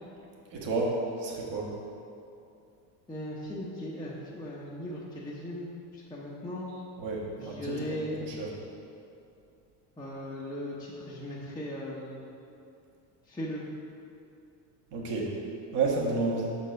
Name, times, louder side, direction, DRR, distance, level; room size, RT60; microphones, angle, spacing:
voice 1, 0.5-1.0 1.2-1.7 7.0-7.7 8.0-8.1 8.4-8.5 14.9-15.3 15.7-16.5, right 3 dB, 60° right, -2 dB, 1.5 m, -30 dB
voice 2, 3.1-6.7 7.4-8.2 10.0-12.2 13.2-13.6, left 1 dB, 10° left, -6 dB, 0.6 m, -38 dB
5.4 x 4.3 x 5.1 m, 2.6 s
supercardioid pair, 110°, 50 cm